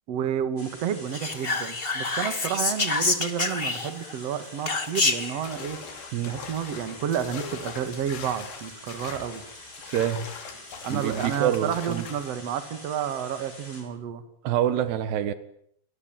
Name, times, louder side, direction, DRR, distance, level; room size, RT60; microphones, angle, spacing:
voice 1, 0.1-5.8 6.2-9.4 10.8-14.2, right 8 dB, 45° right, 10 dB, 2.6 m, -30 dB
sound 1, 0.6-13.8, left 1 dB, 20° left, 7.5 m, -46 dB
Whispering, 1.1-4.1 4.6-5.4, left 3 dB, 45° left, 0.7 m, -27 dB
sound 2, 5.4-12.3, left 6 dB, 80° left, 5.1 m, -41 dB
voice 2, 9.9-10.3 10.9-12.0 14.4-15.3, right 10 dB, 75° right, 12 dB, 3.6 m, -26 dB
29.0 x 20.0 x 9.1 m, 0.70 s
omnidirectional pair, 4.8 m